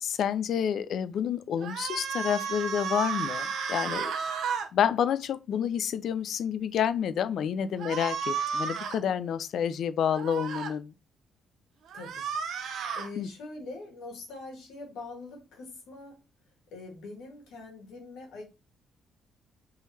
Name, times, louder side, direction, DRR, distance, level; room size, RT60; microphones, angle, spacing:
voice 1, 0.0-4.1 4.7-10.9 13.2-13.3, left 8 dB, 70° left, 0.4 m, -29 dB
sound 1, 1.6-4.7 7.8-9.0 10.1-10.7 11.9-13.1, right 6 dB, 70° right, 0.7 m, -33 dB
voice 2, 7.6-7.9 11.9-12.3 12.7-16.2 16.7-18.4, left 3 dB, 85° left, 1.8 m, -43 dB
3.8 x 3.0 x 4.1 m
cardioid pair, 90°, 0 cm